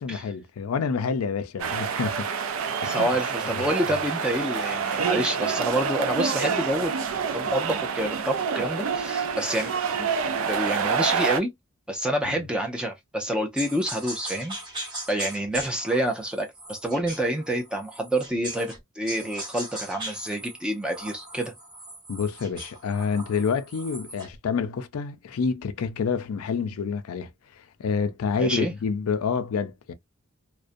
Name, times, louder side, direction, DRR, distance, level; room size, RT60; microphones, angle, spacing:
voice 1, 0.0-2.3 2.8-3.1 3.5-3.6 12.2-12.5 22.1-29.9, left 5 dB, 90° left, 0.4 m, -28 dB
sound 1, 1.6-11.4, right 6 dB, 75° right, 0.4 m, -27 dB
voice 2, 2.8-9.7 10.0-11.5 11.9-14.6 15.1-21.5 28.4-28.7, right 1 dB, 5° right, 0.5 m, -28 dB
sound 2, 13.6-18.8 19.1-24.4, right 1 dB, 20° right, 1.1 m, -39 dB
2.4 x 2.1 x 2.5 m
head